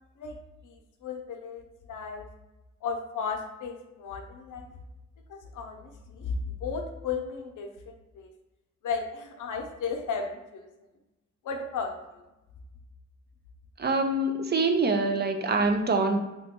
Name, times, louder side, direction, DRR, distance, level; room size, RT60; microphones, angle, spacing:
voice 1, 0.6-2.3 2.8-4.7 5.3-8.3 8.8-10.7 11.4-12.2, left 5 dB, 90° left, 3 dB, 0.6 m, -35 dB
voice 2, 13.8-16.2, right 3 dB, 35° right, 5 dB, 0.4 m, -25 dB
3.0 x 2.2 x 4.1 m, 1.0 s
cardioid pair, 95°, 30 cm